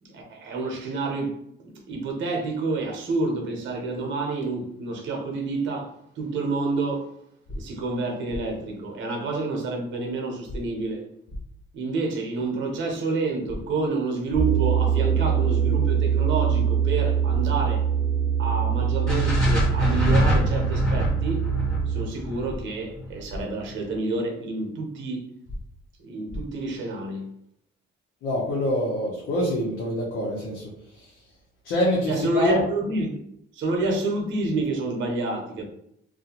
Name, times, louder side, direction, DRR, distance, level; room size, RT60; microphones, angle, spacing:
voice 1, 0.0-7.1 7.5-11.1 11.7-17.9 18.4-21.5 21.9-25.3 26.0-27.3 32.1-33.2 33.5-35.6, right 3 dB, 70° right, 0.7 m, -28 dB
sound 1, 7.5-7.6 8.3-8.4 10.5-10.6 11.3-11.4 13.5-13.6 14.3-14.4 16.5-16.6 17.3-17.4 19.5-19.6 20.3-20.4 22.5-22.6 23.3-23.4 25.5-25.6 26.3-26.4, left 1 dB, 40° left, 0.5 m, -34 dB
sound 2, 14.4-22.1, right 8 dB, 20° right, 0.3 m, -23 dB
sound 3, 19.1-23.2, left 1 dB, 5° left, 1.5 m, -24 dB
voice 2, 28.2-30.6 31.0-31.1 31.6-32.6, left 1 dB, 85° left, 0.7 m, -25 dB
2.4 x 2.2 x 2.8 m
cardioid pair, 90°, 20 cm